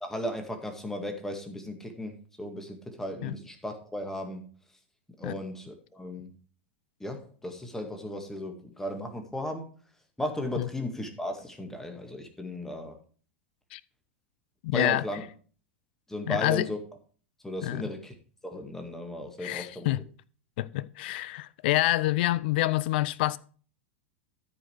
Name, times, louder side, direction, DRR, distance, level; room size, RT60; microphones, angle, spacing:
voice 1, 0.0-4.5 5.2-6.4 7.0-9.7 10.2-13.0 14.7-15.2 16.1-16.8 17.4-18.1 18.4-19.9, left 1 dB, 5° left, 2.0 m, -35 dB
voice 2, 14.6-15.0 16.3-16.7 17.6-17.8 19.4-20.0 20.6-23.4, left 16 dB, 55° left, 0.4 m, -27 dB
13.5 x 5.3 x 4.7 m
figure-of-eight pair, 90°, 7 cm